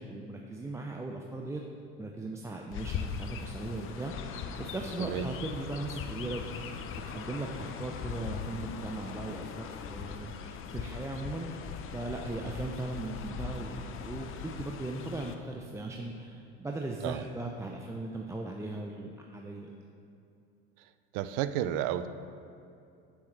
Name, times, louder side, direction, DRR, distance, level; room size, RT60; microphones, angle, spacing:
voice 1, 0.0-1.6 2.0-6.4 6.7-6.8 7.1-11.5 11.9-19.8, right 2 dB, 10° right, 0 dB, 0.5 m, -38 dB
Chirp tweet, 2.7-15.4, left 7 dB, 40° left, 0.6 m, -40 dB
voice 2, 21.1-22.1, right 11 dB, 60° right, 13 dB, 0.5 m, -31 dB
8.9 x 8.0 x 3.3 m, 2.6 s
hypercardioid pair, 85°, 33 cm